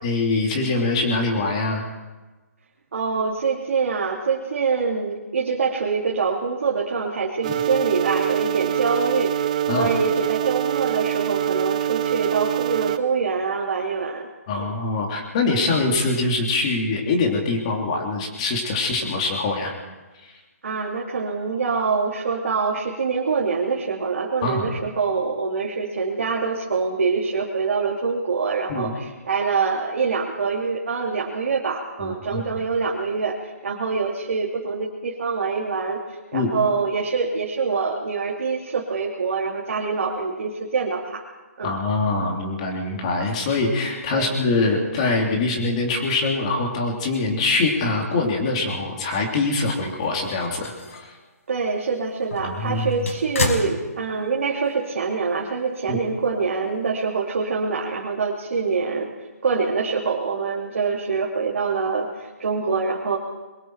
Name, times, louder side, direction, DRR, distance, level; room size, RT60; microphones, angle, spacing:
voice 1, 0.0-1.8 7.5-7.6 9.7-9.9 14.5-19.7 20.2-20.3 24.4-24.8 28.7-28.9 32.0-32.4 36.3-36.5 41.6-51.1 52.4-52.9 55.9-56.0, left 3 dB, 25° left, 1 dB, 2.9 m, -24 dB
voice 2, 2.9-14.3 14.6-14.7 20.6-41.2 41.6-41.7 44.1-44.3 51.5-59.1 59.4-63.2, right 4 dB, 55° right, -2 dB, 2.8 m, -25 dB
sound 1, 7.4-13.0, right 11 dB, 25° right, 0.7 m, -24 dB
sound 2, 50.0-51.2 51.6-51.8 52.2-54.4 54.7-54.8 56.0-56.1, left 4 dB, 60° left, 4.8 m, -30 dB
25.5 x 23.0 x 4.7 m, 1.2 s
hypercardioid pair, 175°, 9 cm